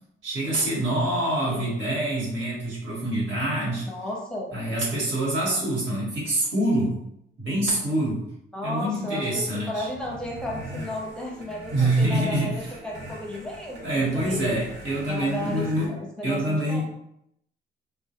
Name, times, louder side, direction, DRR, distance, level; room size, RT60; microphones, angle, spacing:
voice 1, 0.2-3.9 4.5-7.0 7.4-8.2 8.6-9.9 11.7-12.7 13.8-15.9 16.2-16.8, right 1 dB, 80° right, -5 dB, 1.3 m, -25 dB
voice 2, 3.9-4.5 8.5-14.6 15.0-16.8, left 1 dB, 5° left, -3 dB, 0.6 m, -34 dB
sound 1, 9.7-15.9, equal, 60° right, 0.7 m, -41 dB
2.2 x 2.1 x 2.8 m, 0.78 s
cardioid pair, 90°, 20 cm